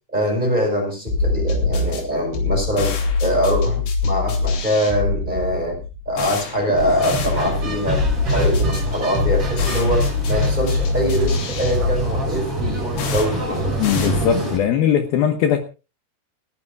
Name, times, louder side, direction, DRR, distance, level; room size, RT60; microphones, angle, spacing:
voice 1, 0.1-2.9 3.2-8.0 8.3-13.7, equal, 10° right, 2 dB, 5.0 m, -23 dB
sound 1, 1.1-14.7, left 3 dB, 90° left, 5.1 m, -24 dB
sound 2, 6.8-14.6, right 1 dB, 35° right, 6.9 m, -26 dB
voice 2, 13.8-15.6, left 9 dB, 70° left, 7 dB, 2.9 m, -19 dB
30.0 x 10.5 x 2.4 m, 0.30 s
omnidirectional pair, 4.8 m